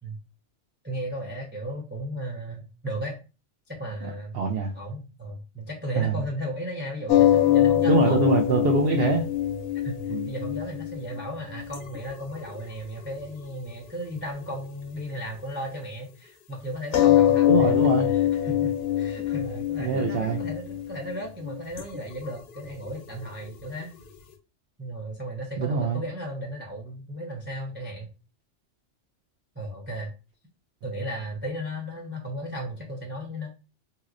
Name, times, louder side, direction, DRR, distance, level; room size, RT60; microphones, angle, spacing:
voice 1, 0.8-3.2 3.7-4.3 4.7-8.3 9.7-17.8 18.1-23.9 24.8-28.1 29.6-30.1 30.8-33.5, equal, 15° right, 0.3 m, -35 dB
voice 2, 4.3-4.7 5.9-6.1 7.8-9.2 10.1-10.3 17.4-18.1 19.8-20.4 25.6-26.0, right 5 dB, 65° right, 0.7 m, -24 dB
sound 1, 7.1-13.4 14.4-14.5 16.9-24.1, left 12 dB, 65° left, 0.7 m, -23 dB
3.0 x 2.9 x 2.4 m
omnidirectional pair, 1.3 m